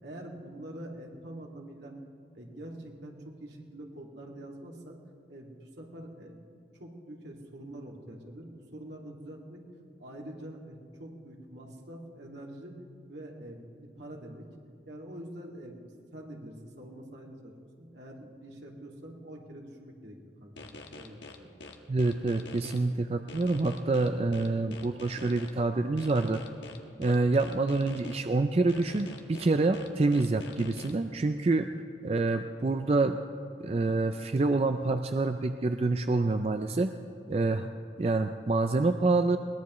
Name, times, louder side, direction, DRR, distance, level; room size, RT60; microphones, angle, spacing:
voice 1, 0.0-1.9 2.3-5.0 5.3-6.3 6.7-9.6 10.0-12.8 13.1-14.5 14.9-21.5, right 1 dB, 80° right, -1 dB, 2.3 m, -45 dB
sound 1, 20.6-22.8 23.3-25.5 26.0-28.2 28.7-30.9, left 3 dB, 90° left, 1.3 m, -46 dB
voice 2, 21.9-26.4 27.0-31.7 32.0-33.2 33.6-36.9 37.3-37.7 38.0-39.4, right 3 dB, 35° right, 7 dB, 0.4 m, -27 dB
22.0 x 19.5 x 3.1 m, 2.5 s
head